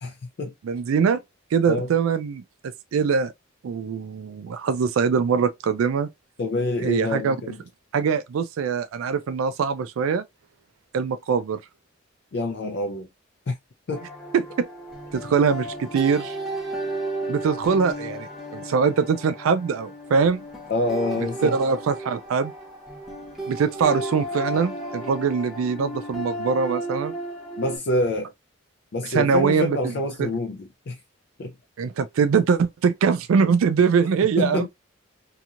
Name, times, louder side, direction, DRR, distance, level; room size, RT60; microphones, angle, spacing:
voice 1, 0.0-0.5 1.6-1.9 6.4-7.6 12.3-13.1 13.5-13.6 13.9-14.0 20.7-21.6 27.6-28.3 28.9-31.0 31.4-31.5 34.4-34.7, left 2 dB, 55° left, 0.4 m, -26 dB
voice 2, 0.6-1.2 1.5-3.3 3.6-6.1 6.8-7.4 7.9-10.2 10.9-11.6 14.3-14.7 15.1-16.4 17.3-20.4 21.4-22.5 23.5-27.1 29.0-29.9 30.2-30.3 31.8-34.7, right 6 dB, 90° right, 0.3 m, -22 dB
sound 1, 13.9-27.8, right 1 dB, ahead, 0.8 m, -34 dB
2.9 x 2.7 x 2.4 m
head